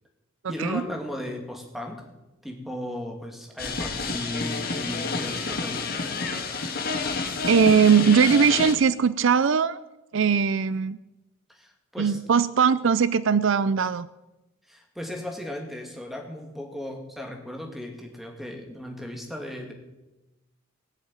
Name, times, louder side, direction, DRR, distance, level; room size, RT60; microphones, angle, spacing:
voice 1, 0.5-2.1 2.4-6.0 11.5-12.2 14.7-19.7, left 1 dB, ahead, 1 dB, 2.4 m, -36 dB
sound 1, 3.6-8.7, left 4 dB, 45° left, 1.8 m, -29 dB
voice 2, 7.5-9.8 10.1-11.0 12.0-14.1, right 6 dB, 60° right, 16 dB, 0.4 m, -20 dB
19.0 x 7.2 x 9.1 m, 1.0 s
head